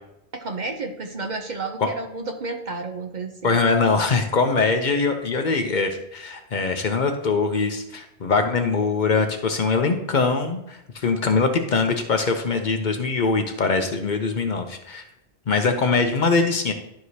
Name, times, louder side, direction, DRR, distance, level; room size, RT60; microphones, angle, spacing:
voice 1, 0.3-3.6, right 3 dB, 50° right, 5 dB, 0.7 m, -31 dB
voice 2, 3.4-15.0 15.5-16.7, left 4 dB, 50° left, 5 dB, 0.7 m, -22 dB
11.5 x 4.7 x 2.7 m, 0.84 s
omnidirectional pair, 1.1 m